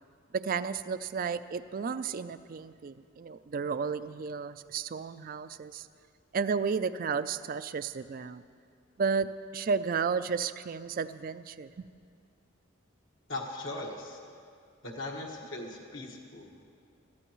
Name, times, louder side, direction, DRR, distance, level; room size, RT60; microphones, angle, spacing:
voice 1, 0.3-5.9 6.3-8.4 9.0-11.9, right 5 dB, 45° right, 13 dB, 0.4 m, -33 dB
voice 2, 13.3-14.2 14.8-16.6, left 2 dB, 65° left, -2 dB, 1.5 m, -39 dB
21.0 x 14.5 x 3.1 m, 2.3 s
head